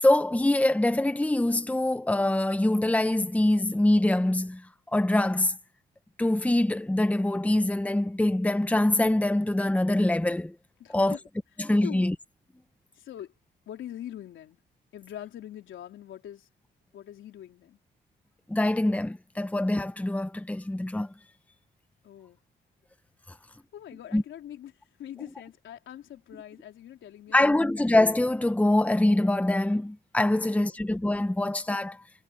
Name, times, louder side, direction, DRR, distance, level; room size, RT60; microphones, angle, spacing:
voice 1, 0.0-4.6 4.9-5.6 6.2-10.5 10.9-11.2 11.6-12.1 18.5-21.1 24.1-24.2 27.3-32.0, left 1 dB, 5° left, 1.3 m, -24 dB
voice 2, 10.8-11.2 11.8-12.1 13.0-13.3 13.7-14.6 14.9-16.5 16.9-17.8 22.0-22.4 23.7-27.7 30.4-30.8, left 11 dB, 75° left, 4.1 m, -43 dB
cardioid pair, 90°, 20 cm